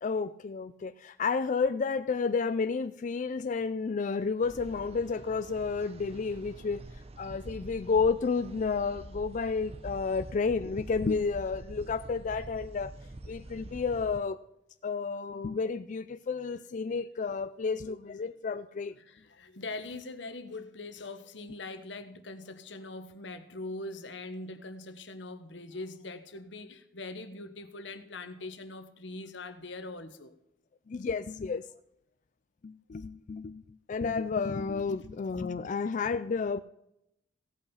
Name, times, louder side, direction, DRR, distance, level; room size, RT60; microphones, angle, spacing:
voice 1, 0.0-6.8 7.2-12.9 13.3-14.4 14.8-18.9 30.9-31.6 32.6-33.6 33.9-36.6, left 5 dB, 45° left, 0.4 m, -31 dB
sound 1, 4.4-14.2, right 1 dB, 35° right, 0.8 m, -46 dB
voice 2, 19.0-30.3, left 2 dB, 85° left, 1.2 m, -42 dB
16.5 x 5.6 x 5.6 m
head